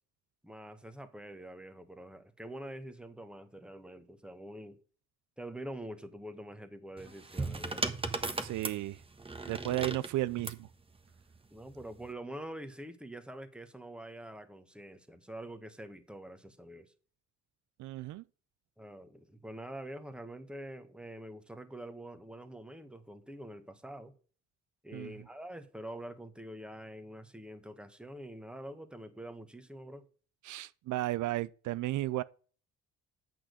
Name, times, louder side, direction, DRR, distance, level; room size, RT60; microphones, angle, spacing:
voice 1, 0.4-4.8 5.4-8.0 11.5-16.9 18.8-24.1 24.8-30.1, right 1 dB, 5° right, 1.4 m, -46 dB
sound 1, 7.0-10.6 11.7-12.1, right 3 dB, 20° right, 1.3 m, -37 dB
voice 2, 8.4-9.0 9.5-10.7 17.8-18.2 24.9-25.1 30.4-32.2, right 16 dB, 75° right, 0.5 m, -34 dB
8.9 x 6.1 x 6.4 m
cardioid pair, 90°, 30 cm